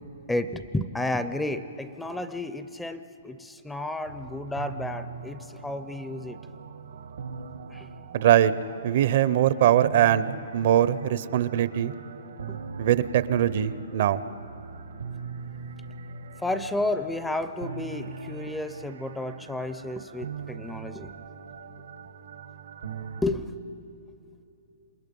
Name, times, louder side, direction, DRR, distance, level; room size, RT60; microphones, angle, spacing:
voice 1, 0.3-6.4 7.7-7.9 16.4-21.1 23.2-23.5, left 2 dB, 5° left, 11 dB, 0.5 m, -31 dB
sound 1, 4.0-23.2, right 5 dB, 85° right, 1.3 m, -41 dB
voice 2, 8.1-8.5 8.8-10.3 10.5-11.9 12.8-14.2, right 11 dB, 50° right, 15 dB, 0.6 m, -21 dB
27.5 x 20.5 x 5.4 m, 2.9 s
hypercardioid pair, 160°, 0 cm